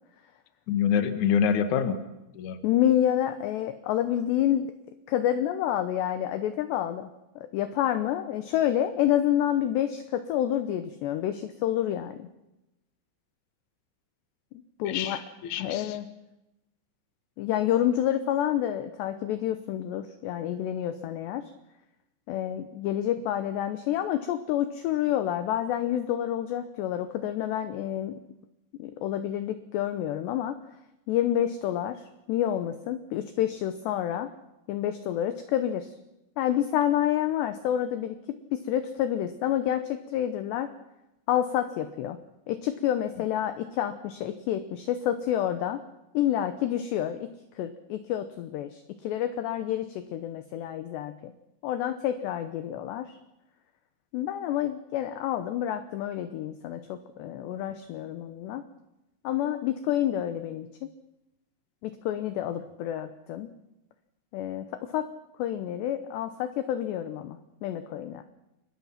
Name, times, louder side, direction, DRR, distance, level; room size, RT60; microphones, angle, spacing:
voice 1, 0.7-2.0 2.3-2.6 14.8-16.0, left 7 dB, 55° left, 9 dB, 2.3 m, -26 dB
voice 2, 2.6-4.7 5.1-7.1 7.4-12.3 14.8-15.2 15.6-16.1 17.4-21.5 22.3-28.2 28.8-30.6 31.1-34.3 34.7-35.9 36.4-40.7 41.3-42.2 42.5-45.8 46.1-47.3 47.6-51.3 51.6-53.1 54.1-58.6 59.2-60.9 61.8-63.5 64.3-65.1 65.4-68.2, left 11 dB, 75° left, 10 dB, 2.6 m, -28 dB
29.0 x 23.0 x 5.8 m, 0.93 s
omnidirectional pair, 6.0 m